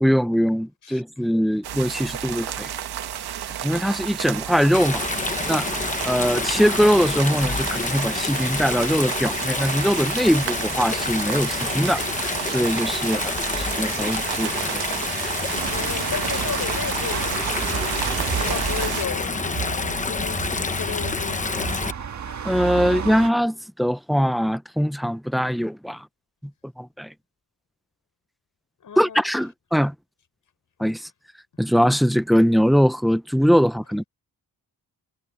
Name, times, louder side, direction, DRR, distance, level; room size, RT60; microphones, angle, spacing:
voice 1, 0.0-2.7 3.6-5.1 5.5-5.7 6.0-14.8 22.4-26.1 26.8-27.1 29.0-29.9 30.8-31.1 31.6-34.0, equal, ahead, 0.6 m, -22 dB
sound 1, 1.6-19.0, right 10 dB, 85° right, 1.3 m, -31 dB
Stream, 4.7-21.9, left 4 dB, 20° left, 0.9 m, -28 dB
sound 2, 15.5-23.3, right 7 dB, 50° right, 1.6 m, -32 dB
voice 2, 15.6-18.1 18.4-21.8 28.8-29.4, left 8 dB, 55° left, 6.7 m, -34 dB
wide cardioid pair, 165°, 37 cm